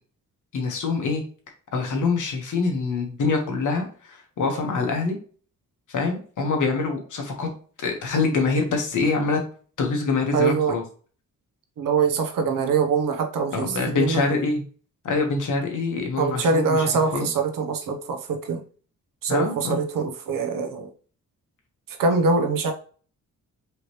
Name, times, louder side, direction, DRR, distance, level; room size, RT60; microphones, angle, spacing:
voice 1, 0.5-1.2 1.7-5.2 5.9-7.5 7.8-9.4 9.8-10.8 13.5-14.6 15.0-16.9 17.1-17.3 19.3-19.8, left 4 dB, 70° left, 2 dB, 1.4 m, -25 dB
voice 2, 10.3-10.7 11.8-14.2 16.2-18.6 19.2-20.9 21.9-22.7, right 4 dB, 80° right, 5 dB, 0.9 m, -23 dB
5.0 x 3.1 x 3.1 m, 0.42 s
wide cardioid pair, 125°, 32 cm